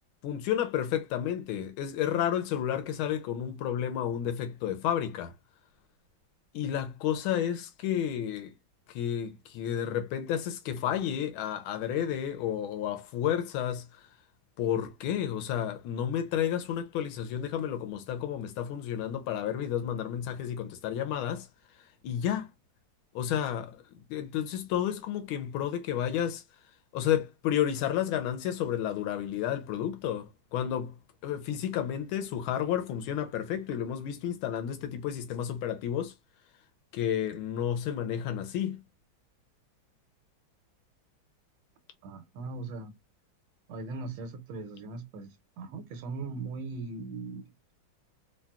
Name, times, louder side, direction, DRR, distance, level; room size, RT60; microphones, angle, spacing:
voice 1, 0.2-5.3 6.5-8.5 8.9-14.1 14.6-21.5 22.0-22.5 23.1-26.4 26.9-36.1 36.9-38.8, left 10 dB, 85° left, 1.5 m, -31 dB
voice 2, 42.0-42.9 43.7-47.5, right 3 dB, 90° right, 1.4 m, -39 dB
3.9 x 2.3 x 2.2 m
omnidirectional pair, 2.2 m